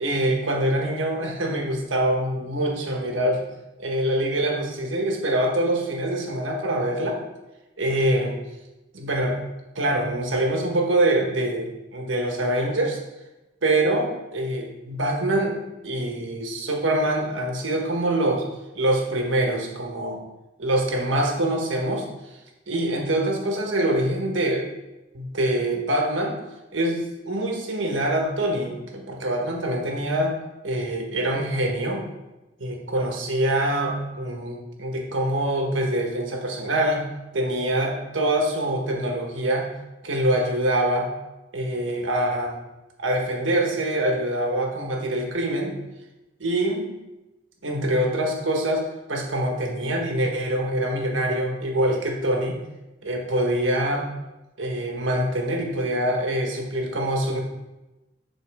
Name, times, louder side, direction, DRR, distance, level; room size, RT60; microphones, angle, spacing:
voice 1, 0.0-3.4 3.8-7.2 7.8-8.4 8.9-9.4 9.7-13.0 13.6-15.6 15.8-18.4 18.7-20.2 20.6-22.0 22.7-24.7 25.1-26.4 26.7-30.3 30.6-32.0 32.6-37.1 37.3-39.7 40.0-41.1 41.5-42.6 43.0-45.8 46.4-47.0 47.6-48.8 49.1-52.6 53.0-54.1 54.6-57.4, right 1 dB, 85° right, 1 dB, 1.5 m, -24 dB
11.0 x 4.2 x 3.6 m, 1.0 s
head